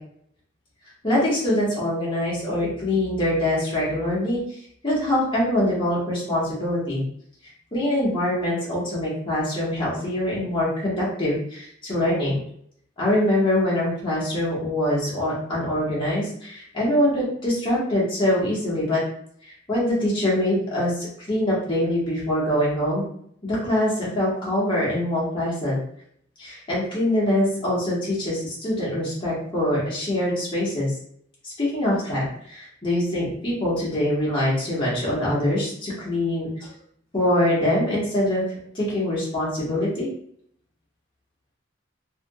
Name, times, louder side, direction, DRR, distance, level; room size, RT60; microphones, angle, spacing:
voice 1, 1.0-4.4 4.8-7.0 7.7-12.4 13.0-19.0 19.7-23.0 23.4-25.8 26.4-30.9 31.4-36.7 37.1-38.4 38.7-40.1, left 1 dB, 25° left, -7 dB, 1.2 m, -24 dB
3.4 x 2.7 x 2.3 m, 0.66 s
head